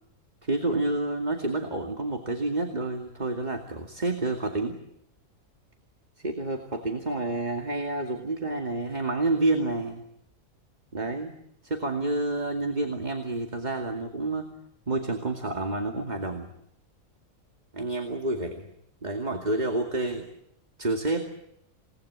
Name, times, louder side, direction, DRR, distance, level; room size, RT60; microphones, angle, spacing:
voice 1, 0.4-4.8 6.2-10.0 10.9-11.3 11.6-14.5 14.9-16.5 17.7-18.7 19.0-20.3 20.8-21.3, right 2 dB, 30° right, 4 dB, 2.5 m, -29 dB
28.5 x 19.0 x 10.0 m, 0.76 s
omnidirectional pair, 1.4 m